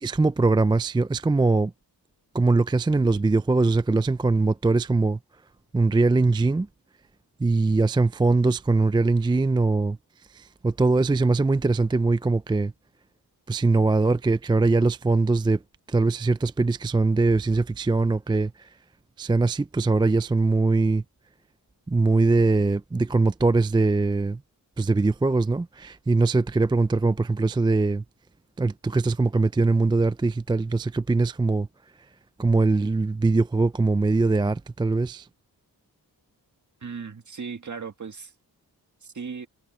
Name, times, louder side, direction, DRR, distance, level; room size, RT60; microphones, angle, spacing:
voice 1, 0.0-1.7 2.3-5.2 5.7-6.7 7.4-10.0 10.3-12.7 13.5-15.6 15.9-18.7 19.2-21.0 21.9-24.4 24.8-28.0 28.6-31.7 32.4-35.3, right 3 dB, 10° right, 0.3 m, -22 dB
voice 2, 36.8-38.3 39.0-39.5, right 5 dB, 45° right, 2.0 m, -36 dB
wide cardioid pair, 90°, 39 cm